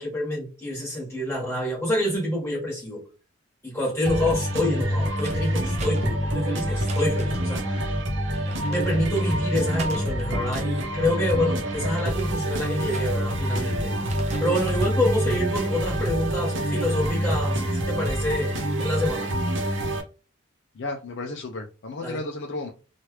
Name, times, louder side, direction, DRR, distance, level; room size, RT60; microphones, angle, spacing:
voice 1, 0.0-3.0 3.6-7.9 8.6-19.3 22.0-22.2, left 1 dB, 10° left, -4 dB, 1.3 m, -27 dB
sound 1, 4.0-20.0, equal, 65° right, 0.7 m, -26 dB
sound 2, 5.2-7.6 8.3-9.3 9.7-10.9 11.4-13.6 13.9-15.0 15.5-15.9, right 1 dB, 35° right, 0.4 m, -39 dB
voice 2, 20.7-22.7, left 2 dB, 55° left, 2 dB, 0.4 m, -33 dB
3.0 x 2.4 x 3.1 m, 0.34 s
head